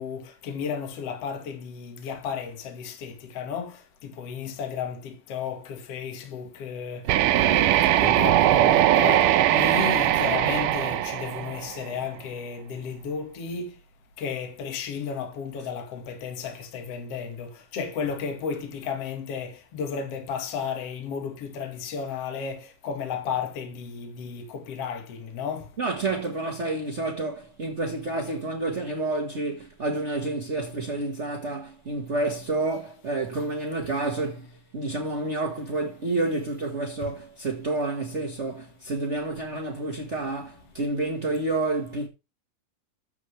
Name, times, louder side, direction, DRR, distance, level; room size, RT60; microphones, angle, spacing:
voice 1, 0.0-13.8 14.2-25.8, left 6 dB, 50° left, 2.6 m, -33 dB
sound 1, 7.1-12.0, right 12 dB, 75° right, 2.3 m, -21 dB
voice 2, 25.8-42.1, right 2 dB, 35° right, 1.1 m, -29 dB
14.5 x 8.5 x 3.4 m
omnidirectional pair, 3.9 m